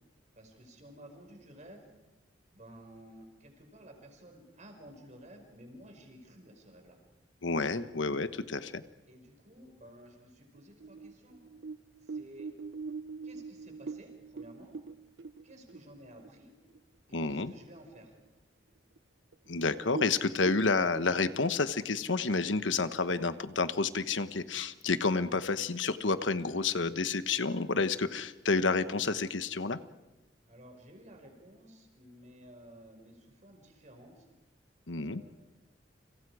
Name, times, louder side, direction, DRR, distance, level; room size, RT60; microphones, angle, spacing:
voice 1, 0.4-1.9 2.5-7.0 9.1-11.4 12.0-12.5 13.2-14.8 15.4-16.5 17.1-18.2 30.5-34.3 34.9-35.3, right 1 dB, 40° right, 4 dB, 5.4 m, -53 dB
voice 2, 7.4-8.8 17.1-17.5 19.5-29.8 34.9-35.2, left 4 dB, 90° left, 11 dB, 1.2 m, -30 dB
sound 1, 10.5-16.4 16.7-16.8 17.2-17.8 18.2-18.3 19.0-19.1 19.3-19.5 19.8-21.0, right 4 dB, 85° right, 0.8 m, -42 dB
30.0 x 27.0 x 4.9 m, 1.1 s
head